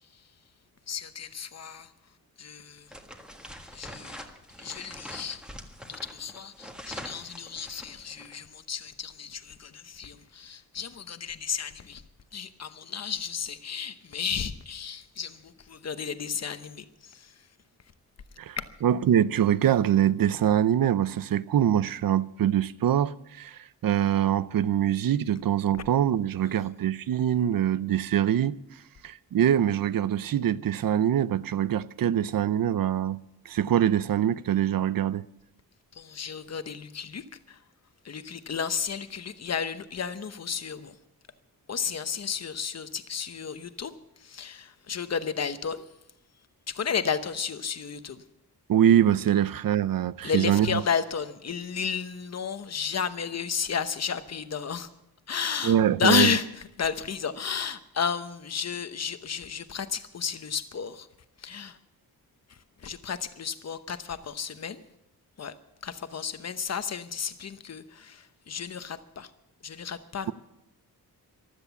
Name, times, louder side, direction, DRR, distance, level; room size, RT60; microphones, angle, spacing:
voice 1, 0.9-1.9 2.4-2.9 3.7-4.2 4.6-5.4 5.8-12.0 12.3-17.3 35.9-37.6 38.0-40.9 41.7-45.8 46.7-48.2 50.2-54.9 55.3-56.5 56.8-61.1 61.4-61.8 62.8-64.8 65.4-65.5 65.8-69.3 69.6-70.3, left 6 dB, 45° left, 0.9 m, -32 dB
sound 1, 2.9-8.4, equal, ahead, 1.5 m, -44 dB
voice 2, 18.4-33.2 33.4-35.3 48.7-50.8 55.6-56.4, right 10 dB, 65° right, 0.6 m, -24 dB
15.0 x 12.5 x 7.0 m
wide cardioid pair, 145°, 38 cm